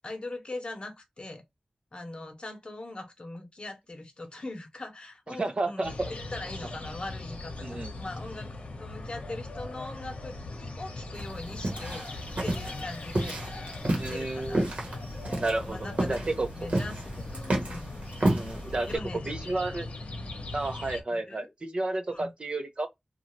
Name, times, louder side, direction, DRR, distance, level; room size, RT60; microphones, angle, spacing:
voice 1, 0.0-1.4 1.9-8.5 8.8-12.1 12.4-17.3 17.7-17.9 18.8-19.6 21.1-21.5 22.1-22.3, left 2 dB, 50° left, 0.9 m, -41 dB
voice 2, 5.3-6.1 7.6-7.9 14.0-14.6 15.4-16.5 18.3-18.9 19.3-19.9 20.5-22.9, right 2 dB, 55° right, 0.6 m, -31 dB
sound 1, 5.8-21.0, left 2 dB, 75° left, 0.8 m, -40 dB
sound 2, 11.1-18.9, right 1 dB, 75° right, 1.1 m, -31 dB
2.6 x 2.3 x 3.1 m
wide cardioid pair, 65°, 2 cm